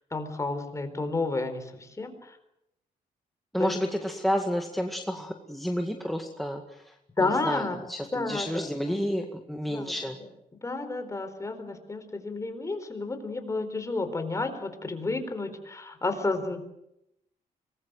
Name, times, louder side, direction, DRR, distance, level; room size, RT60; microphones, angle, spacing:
voice 1, 0.1-2.3 3.6-3.7 7.2-7.8 8.1-9.0 9.7-9.9 10.6-16.6, left 3 dB, 20° left, 7 dB, 4.2 m, -31 dB
voice 2, 3.5-6.9 7.2-10.2, equal, ahead, 2 dB, 2.0 m, -30 dB
25.0 x 20.5 x 7.8 m, 0.84 s
cardioid pair, 120°, 14 cm